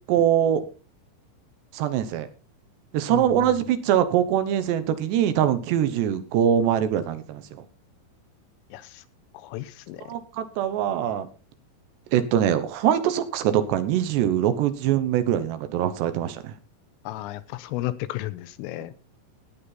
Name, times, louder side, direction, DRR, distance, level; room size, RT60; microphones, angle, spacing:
voice 1, 0.1-0.6 1.7-2.3 2.9-7.4 10.1-11.3 12.1-16.5, right 10 dB, 70° right, 11 dB, 3.0 m, -23 dB
voice 2, 3.1-3.5 8.7-9.0 9.3-10.0 17.0-18.9, left 15 dB, 85° left, 14 dB, 3.4 m, -33 dB
18.0 x 8.6 x 4.1 m, 0.33 s
omnidirectional pair, 5.8 m